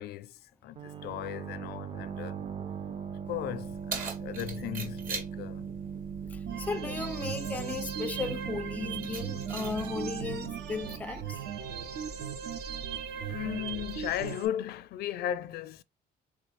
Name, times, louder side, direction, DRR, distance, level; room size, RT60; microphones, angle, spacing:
voice 1, 0.0-2.4 3.3-5.7 6.8-7.1 13.1-15.8, left 11 dB, 70° left, 0.5 m, -36 dB
sound 1, 0.8-12.2, right 7 dB, 30° right, 0.6 m, -40 dB
Keys jangling, 3.3-14.3, right 4 dB, 55° right, 2.1 m, -44 dB
voice 2, 6.3-11.4, left 4 dB, 10° left, 0.3 m, -36 dB
sound 2, 6.5-14.5, right 8 dB, 75° right, 1.0 m, -38 dB
4.7 x 3.3 x 3.2 m
cardioid pair, 110°, 17 cm